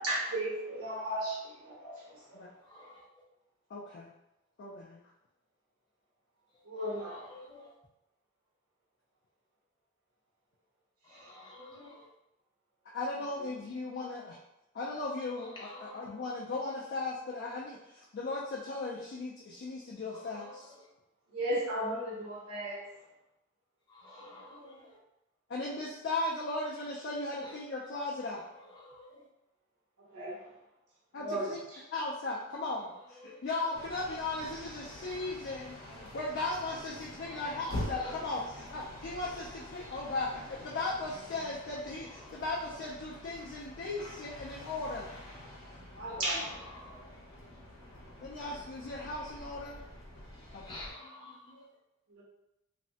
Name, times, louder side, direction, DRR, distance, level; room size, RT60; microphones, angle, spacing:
voice 1, 0.0-2.0 6.6-7.2 21.3-22.9 30.1-30.4 31.2-31.6 45.9-46.6 52.1-52.2, right 1 dB, 85° right, -6 dB, 1.1 m, -34 dB
voice 2, 2.6-3.0 6.7-7.7 11.0-12.1 15.4-16.2 20.1-20.8 23.9-25.0 27.4-27.6 28.5-29.3 33.1-33.4 37.2-38.2 42.1-42.4 42.7-42.9 46.1-47.2 47.9-48.0 48.5-48.6 49.2-49.3 50.5-51.7, left 1 dB, 20° left, -5 dB, 0.7 m, -50 dB
voice 3, 3.7-4.1 4.6-5.0 12.9-14.4 14.7-20.7 25.5-28.4 31.1-31.6 31.9-45.1 48.2-49.8 50.5-50.8, left 2 dB, 50° left, -3 dB, 0.4 m, -37 dB
sound 1, 33.7-50.9, left 1 dB, 75° left, 0.7 m, -46 dB
3.2 x 2.0 x 2.7 m, 0.89 s
head